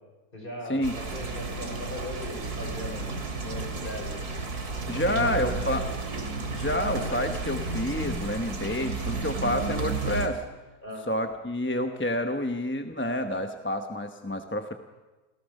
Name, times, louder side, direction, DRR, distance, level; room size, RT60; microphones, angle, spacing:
voice 1, 0.3-3.1 3.4-4.3 4.9-5.8 10.8-11.1, equal, 30° left, 1 dB, 5.8 m, -38 dB
sound 1, 0.8-10.3, right 3 dB, 75° right, 2.8 m, -32 dB
voice 2, 4.9-5.8 6.5-10.4 11.1-14.7, left 1 dB, 10° left, 6 dB, 0.8 m, -28 dB
27.0 x 17.5 x 6.6 m, 1.2 s
omnidirectional pair, 1.7 m